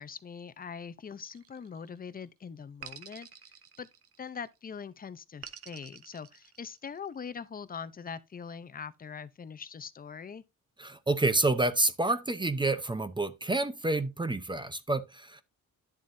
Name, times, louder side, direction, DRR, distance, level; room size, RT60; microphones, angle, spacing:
voice 1, 0.0-3.3 3.8-3.9 4.2-10.4, left 6 dB, 30° left, 0.6 m, -42 dB
sound 1, 1.2-2.1 2.8-4.5 5.4-7.1, right 8 dB, 50° right, 0.9 m, -49 dB
voice 2, 10.8-15.4, right 2 dB, 15° right, 0.7 m, -28 dB
10.5 x 7.2 x 2.7 m
cardioid pair, 110°, 31 cm